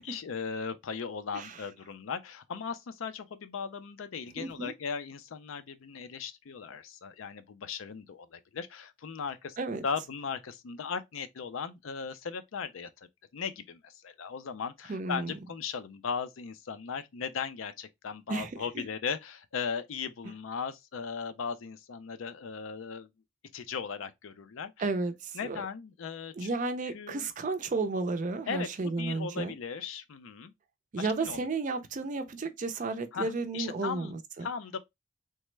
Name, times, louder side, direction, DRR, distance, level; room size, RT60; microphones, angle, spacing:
voice 1, 0.0-12.9 13.3-23.1 23.5-24.7 25.3-26.5 26.9-27.3 28.5-30.5 31.0-31.5 33.1-34.1 34.4-34.8, left 6 dB, 80° left, 0.4 m, -37 dB
voice 2, 4.4-4.7 9.6-9.8 14.9-15.4 18.3-18.8 24.8-25.6 26.4-29.5 30.9-34.5, right 3 dB, 40° right, 0.4 m, -33 dB
3.3 x 2.1 x 3.1 m
head